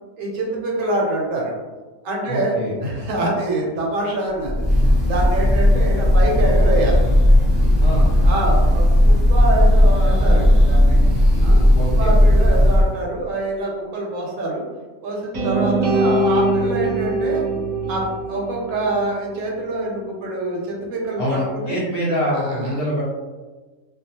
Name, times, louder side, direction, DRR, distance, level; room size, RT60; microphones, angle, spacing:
voice 1, 0.2-1.5 2.0-7.0 7.5-7.8 8.2-11.0 11.4-11.6 12.0-14.6 15.0-17.4 17.9-21.8 22.3-22.7, right 2 dB, 70° right, -2 dB, 1.0 m, -25 dB
voice 2, 2.3-2.8 7.8-8.2 11.8-12.3 21.2-23.0, equal, 55° left, -6 dB, 0.7 m, -24 dB
Breathing / Bird, 4.4-13.0, left 1 dB, 20° left, 0.8 m, -15 dB
sound 1, 15.3-19.4, right 2 dB, 40° right, 0.8 m, -22 dB
2.3 x 2.3 x 2.7 m, 1.3 s
omnidirectional pair, 1.5 m